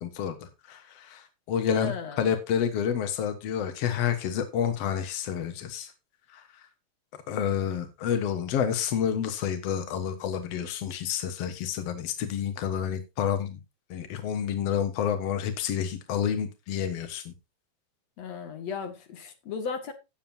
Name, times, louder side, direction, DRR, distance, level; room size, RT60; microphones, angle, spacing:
voice 1, 0.0-5.9 6.3-6.6 7.3-13.6 13.9-17.3, left 8 dB, 80° left, 1.4 m, -29 dB
voice 2, 1.7-2.2 18.2-19.9, left 6 dB, 50° left, 2.5 m, -35 dB
18.0 x 7.4 x 2.8 m
omnidirectional pair, 4.9 m